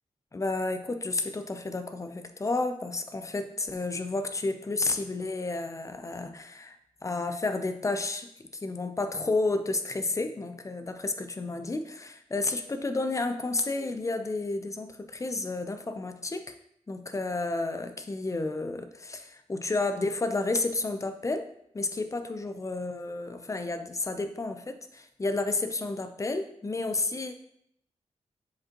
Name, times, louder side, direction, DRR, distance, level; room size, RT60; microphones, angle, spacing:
voice 1, 0.3-8.3 8.6-16.4 16.9-21.4 21.7-27.3, left 3 dB, 25° left, 8 dB, 0.6 m, -31 dB
7.2 x 5.0 x 3.0 m, 0.73 s
cardioid pair, 85°, 12 cm